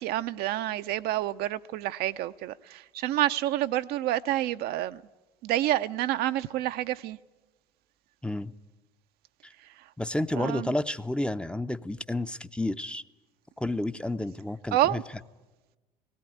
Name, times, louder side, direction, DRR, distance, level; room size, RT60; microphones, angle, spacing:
voice 1, 0.0-5.0 5.4-7.2 10.4-10.7 14.7-15.0, right 14 dB, 55° right, 0.6 m, -28 dB
voice 2, 10.0-13.0 13.6-15.0, left 1 dB, 5° left, 0.6 m, -30 dB
17.5 x 16.5 x 9.2 m
figure-of-eight pair, 60°, 19 cm